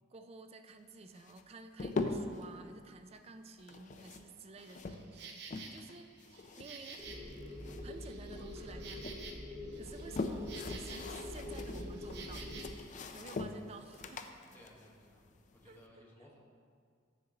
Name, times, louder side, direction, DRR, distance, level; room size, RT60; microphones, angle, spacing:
voice 1, 0.1-7.0 7.8-9.1 9.8-12.5 13.1-14.3 15.6-16.0, right 4 dB, 30° right, 7 dB, 0.4 m, -52 dB
sound 1, 1.2-2.5 3.6-5.9 6.2-8.0 8.3-9.2 9.7-15.8, left 3 dB, 40° left, 0.4 m, -42 dB
Insect, 4.6-12.6, right 5 dB, 60° right, 0.8 m, -51 dB
voice 2, 5.5-5.9 10.0-10.2 14.5-15.3 15.6-16.4, equal, 10° left, -3 dB, 1.2 m, -60 dB
sound 2, 7.0-12.6, left 1 dB, 15° right, 1.8 m, -45 dB
8.0 x 6.7 x 3.8 m, 2.1 s
head